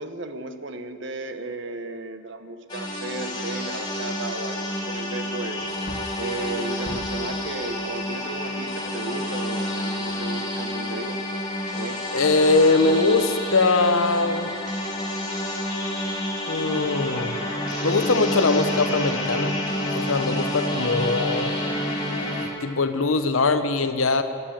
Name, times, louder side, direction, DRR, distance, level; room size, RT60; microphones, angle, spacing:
voice 1, 0.0-5.6 6.2-11.2 11.7-12.0, right 2 dB, 55° right, 9 dB, 0.9 m, -35 dB
sound 1, 2.7-22.5, left 1 dB, 20° left, 2.9 m, -29 dB
Wood, 3.5-3.6 4.2-4.3 5.5-7.4 10.0-10.8 11.2-11.3, left 1 dB, 45° left, 0.9 m, -41 dB
voice 2, 12.1-14.5 16.5-17.4 17.8-19.6 19.9-21.5 22.1-24.2, left 3 dB, 75° left, 10 dB, 0.9 m, -22 dB
15.0 x 9.4 x 8.9 m, 2.3 s
head